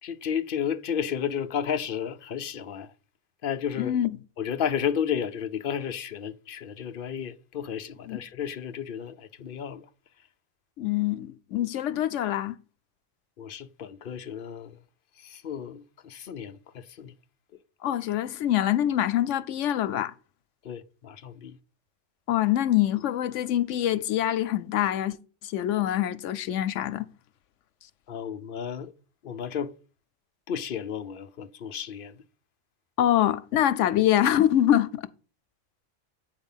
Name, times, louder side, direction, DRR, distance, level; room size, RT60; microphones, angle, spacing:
voice 1, 0.0-2.9 3.4-3.9 4.4-9.8 13.4-14.8 15.2-17.1 20.6-21.6 28.1-28.9 29.2-29.7 30.5-32.2, left 8 dB, 55° left, 0.8 m, -32 dB
voice 2, 3.8-4.1 8.1-8.2 10.8-12.6 17.8-20.1 22.3-25.2 25.4-27.1 33.0-35.0, left 12 dB, 90° left, 1.0 m, -25 dB
8.2 x 4.8 x 7.1 m
omnidirectional pair, 1.2 m